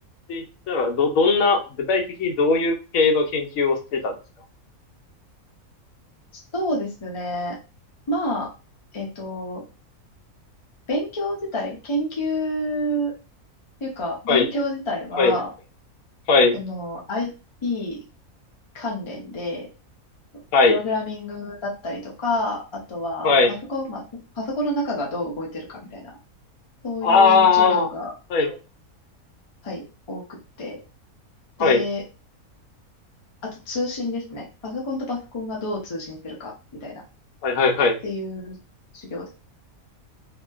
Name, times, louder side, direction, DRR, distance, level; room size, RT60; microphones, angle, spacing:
voice 1, 0.3-1.6 1.9-4.1 14.3-14.5 15.2-15.3 16.3-16.6 20.5-20.8 23.2-23.5 27.0-27.9 28.3-28.6 31.6-31.8 37.4-38.0, left 4 dB, 70° left, 2 dB, 1.0 m, -19 dB
voice 2, 6.5-7.6 8.1-8.5 8.9-9.6 10.9-13.1 13.8-15.5 16.5-17.3 17.6-18.0 18.7-19.7 20.7-24.0 24.3-26.0 26.8-28.1 29.6-30.2 30.6-30.8 31.6-32.0 33.4-37.0 38.0-38.6 38.9-39.3, left 1 dB, 45° left, -3 dB, 0.3 m, -29 dB
2.8 x 2.5 x 2.3 m, 0.31 s
omnidirectional pair, 1.5 m